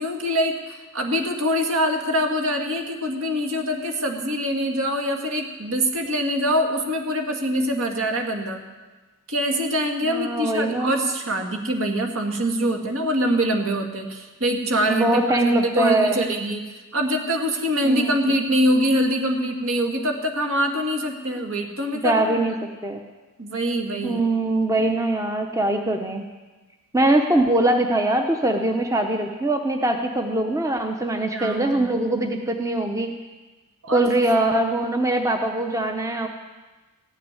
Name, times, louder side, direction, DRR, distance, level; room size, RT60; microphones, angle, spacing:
voice 1, 0.0-8.6 9.3-16.6 16.9-22.4 23.4-24.2 24.8-24.9 31.3-31.9 33.8-34.1, equal, 65° right, 3 dB, 1.9 m, -24 dB
voice 2, 10.0-11.0 14.9-16.3 17.8-18.1 22.0-22.5 22.8-23.0 24.0-26.2 26.9-33.1 33.9-36.3, right 1 dB, 15° right, 4 dB, 0.8 m, -22 dB
15.0 x 6.7 x 9.7 m, 1.2 s
head